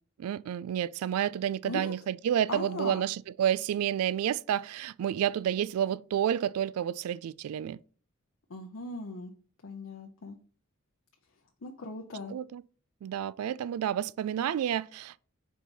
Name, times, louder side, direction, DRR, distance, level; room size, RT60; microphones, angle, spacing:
voice 1, 0.2-7.8 12.3-12.6 13.0-15.1, right 10 dB, 85° right, 0.3 m, -30 dB
voice 2, 2.5-3.1 8.5-9.3 9.6-10.4 11.6-12.3, left 3 dB, 65° left, 0.7 m, -39 dB
4.6 x 4.0 x 5.3 m
head